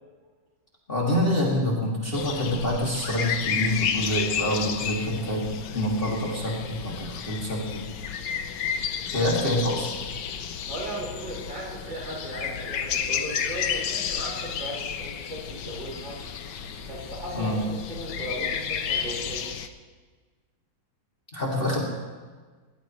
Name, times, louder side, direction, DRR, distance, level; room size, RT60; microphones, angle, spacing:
voice 1, 0.9-5.5 5.7-7.9 9.1-9.9 17.3-17.6 21.3-21.8, left 1 dB, 25° left, -4 dB, 2.6 m, -26 dB
sound 1, 2.1-19.7, left 7 dB, 65° left, 1.4 m, -32 dB
voice 2, 10.7-16.2 16.9-19.5, right 1 dB, 65° right, -5 dB, 5.8 m, -37 dB
21.5 x 18.0 x 3.2 m, 1.4 s
omnidirectional pair, 2.2 m